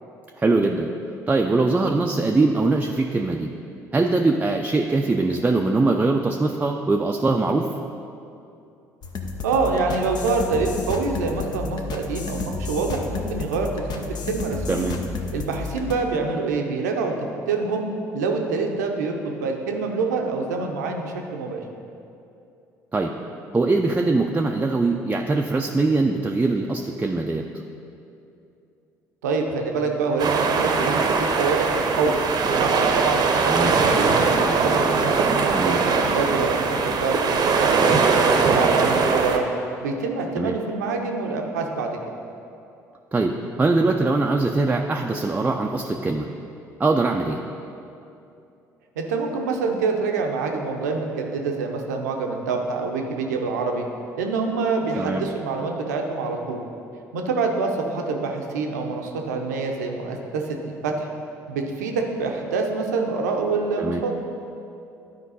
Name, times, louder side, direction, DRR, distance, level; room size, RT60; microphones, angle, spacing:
voice 1, 0.4-0.9 1.3-3.5 3.9-7.7 14.7-15.0 22.9-23.1 23.5-27.4 33.5-33.7 35.5-35.8 40.4-40.5 43.1-46.3 46.8-47.4 54.9-55.2 63.8-64.0, right 3 dB, 20° right, 2 dB, 0.5 m, -22 dB
sound 1, 9.0-15.9, left 4 dB, 50° left, 0.8 m, -31 dB
voice 2, 9.4-14.9 15.3-17.1 17.5-17.9 18.1-21.6 29.2-32.2 32.5-39.4 39.8-42.0 49.0-53.9 54.2-56.6 57.1-61.1 61.5-64.1, right 4 dB, 80° right, 2 dB, 0.7 m, -26 dB
sound 2, 30.2-39.4, right 4 dB, 50° right, 0.8 m, -21 dB
11.0 x 4.6 x 4.1 m, 2.7 s
hypercardioid pair, 55°, 9 cm